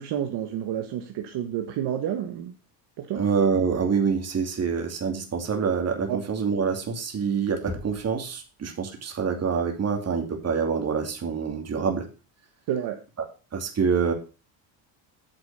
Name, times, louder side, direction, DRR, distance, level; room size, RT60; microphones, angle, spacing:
voice 1, 0.0-2.5 3.0-3.2 6.1-6.2 12.7-13.0, right 10 dB, 60° right, 4 dB, 1.6 m, -29 dB
voice 2, 3.2-12.1 13.5-14.1, right 6 dB, 35° right, 4 dB, 2.7 m, -26 dB
Knock, 7.7-8.6, left 2 dB, 10° right, 2.5 m, -39 dB
9.1 x 6.1 x 6.5 m, 0.32 s
cardioid pair, 125°, 45 cm